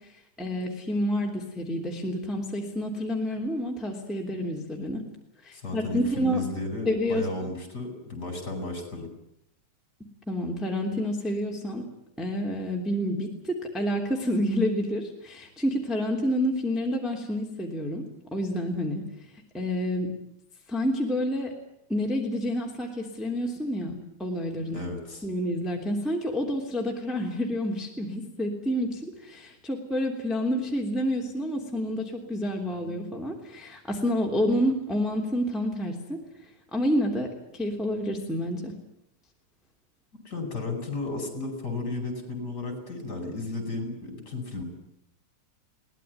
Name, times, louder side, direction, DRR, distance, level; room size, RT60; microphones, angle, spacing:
voice 1, 0.4-5.0 5.4-6.4 6.8-7.5 10.3-11.8 12.2-18.1 18.3-19.0 19.5-20.1 20.7-21.5 21.9-24.8 25.2-36.2 36.7-37.3 37.5-38.7, equal, ahead, -1 dB, 2.9 m, -29 dB
voice 2, 5.5-9.1 24.7-25.2 40.2-44.6, left 2 dB, 30° left, 6 dB, 5.7 m, -34 dB
23.0 x 18.5 x 9.5 m, 0.77 s
omnidirectional pair, 3.4 m